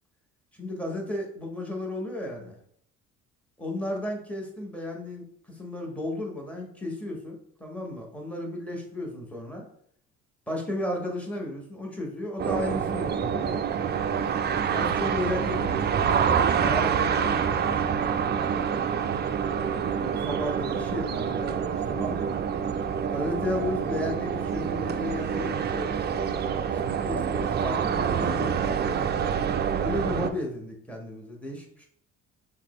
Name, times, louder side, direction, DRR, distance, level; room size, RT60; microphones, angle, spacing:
voice 1, 0.5-2.6 3.6-9.7 10.5-13.6 14.7-18.7 19.9-22.4 23.1-26.0 26.5-29.1 29.8-31.9, left 1 dB, 5° left, 0 dB, 1.3 m, -34 dB
sound 1, 12.4-30.3, right 7 dB, 30° right, 0.4 m, -27 dB
5.7 x 2.2 x 3.1 m, 0.66 s
hypercardioid pair, 55°, 39 cm